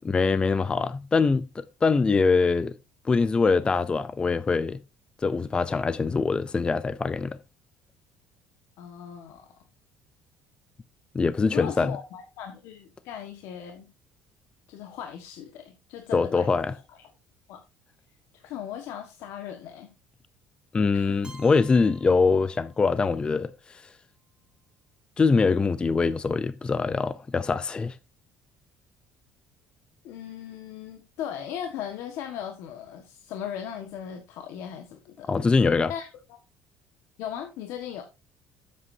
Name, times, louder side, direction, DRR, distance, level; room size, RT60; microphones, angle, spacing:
voice 1, 0.0-2.7 3.0-4.8 5.2-7.4 11.1-12.0 16.1-16.7 20.7-23.9 25.2-28.0 35.2-35.9, left 4 dB, 20° left, 0.4 m, -23 dB
voice 2, 8.8-9.4 11.5-13.9 14.7-16.5 17.5-17.6 18.3-19.9 20.9-21.3 30.0-35.3 35.9-36.4 37.2-38.0, left 9 dB, 75° left, 1.5 m, -38 dB
Keyboard (musical), 21.2-23.2, right 2 dB, 20° right, 2.0 m, -51 dB
12.5 x 8.3 x 2.7 m
cardioid pair, 125°, 5 cm